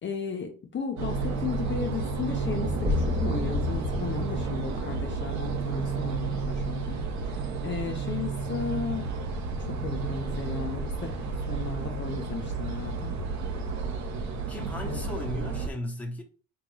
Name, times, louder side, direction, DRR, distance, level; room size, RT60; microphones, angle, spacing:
voice 1, 0.0-9.1 9.6-13.2 14.8-15.1, left 6 dB, 40° left, 0.6 m, -35 dB
sound 1, 1.0-15.7, right 4 dB, 65° right, 0.7 m, -31 dB
sound 2, 2.4-6.5, left 3 dB, 30° right, 0.8 m, -32 dB
voice 2, 14.2-16.2, left 1 dB, 5° left, 0.8 m, -36 dB
3.7 x 2.3 x 3.1 m
cardioid pair, 90°, 30 cm